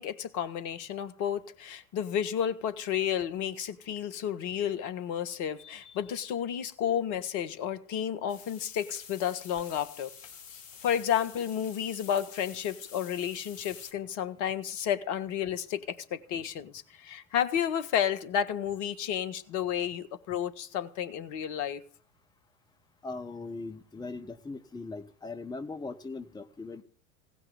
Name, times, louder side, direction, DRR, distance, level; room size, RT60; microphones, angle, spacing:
voice 1, 0.0-10.1 10.5-21.8, left 9 dB, 45° left, 1.5 m, -31 dB
sound 1, 8.3-13.9, left 6 dB, 70° left, 1.6 m, -49 dB
voice 2, 23.0-26.8, left 3 dB, 10° left, 1.1 m, -40 dB
17.5 x 6.0 x 8.9 m
figure-of-eight pair, 80°, 41 cm